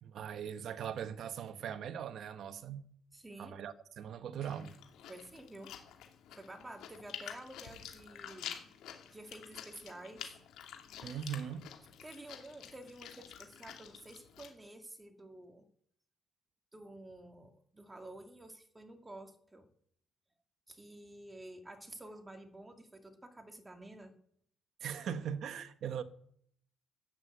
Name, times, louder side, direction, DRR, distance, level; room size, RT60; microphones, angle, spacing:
voice 1, 0.0-2.8 3.4-4.7 11.0-11.7 24.8-26.0, right 8 dB, 65° right, 1.3 m, -40 dB
voice 2, 3.1-3.5 5.1-5.7 6.3-8.6 9.1-10.3 12.0-15.6 16.7-19.7 20.7-24.1, right 1 dB, 15° right, 2.4 m, -51 dB
Chewing mastication, 4.4-14.5, left 9 dB, 80° left, 2.9 m, -49 dB
14.0 x 9.9 x 8.2 m
cardioid pair, 105°, 0 cm